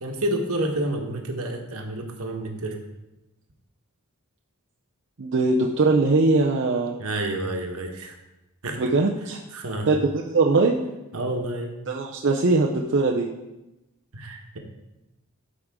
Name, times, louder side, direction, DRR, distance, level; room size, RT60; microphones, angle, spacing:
voice 1, 0.0-2.8 7.0-8.2 8.6-8.8 9.5-9.9 11.1-11.7 14.1-14.6, right 1 dB, 70° right, 3 dB, 1.3 m, -29 dB
voice 2, 5.2-7.0 8.7-9.4 9.9-10.8 11.9-13.3, right 3 dB, 55° right, 0 dB, 0.6 m, -21 dB
13.0 x 5.1 x 3.6 m, 0.98 s
head